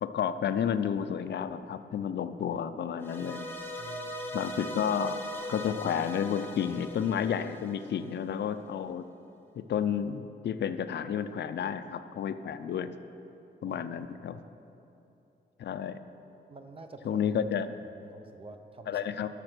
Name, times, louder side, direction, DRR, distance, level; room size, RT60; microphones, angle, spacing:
voice 1, 0.0-3.5 4.3-5.2 5.5-9.0 9.6-12.9 13.6-14.4 15.6-16.0 17.1-17.7 18.9-19.3, left 8 dB, 70° left, 11 dB, 0.5 m, -31 dB
sound 1, 3.0-8.3, left 1 dB, 10° left, 0.9 m, -40 dB
voice 2, 3.8-4.5 13.6-13.8 16.5-17.2 17.8-19.0, right 3 dB, 30° right, 6 dB, 0.7 m, -49 dB
11.5 x 6.7 x 6.1 m, 2.9 s
wide cardioid pair, 140°, 18 cm